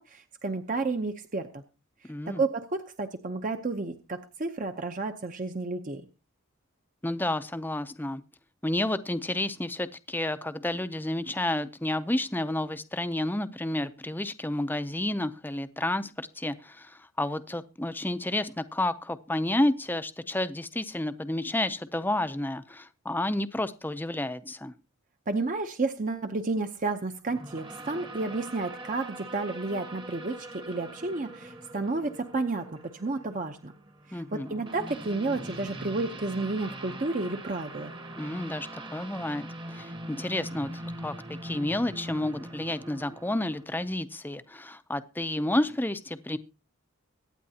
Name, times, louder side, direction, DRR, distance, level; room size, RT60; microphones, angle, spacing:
voice 1, 0.0-1.6 2.3-6.1 25.3-33.7 34.1-37.9, right 3 dB, 40° right, 6 dB, 0.8 m, -31 dB
voice 2, 2.1-2.4 7.0-8.2 8.6-24.7 34.1-34.5 38.2-41.1 41.4-46.4, left 1 dB, 10° left, 12 dB, 0.5 m, -30 dB
sound 1, 27.3-43.6, right 1 dB, 25° right, 1.1 m, -42 dB
24.0 x 9.4 x 2.8 m, 0.32 s
head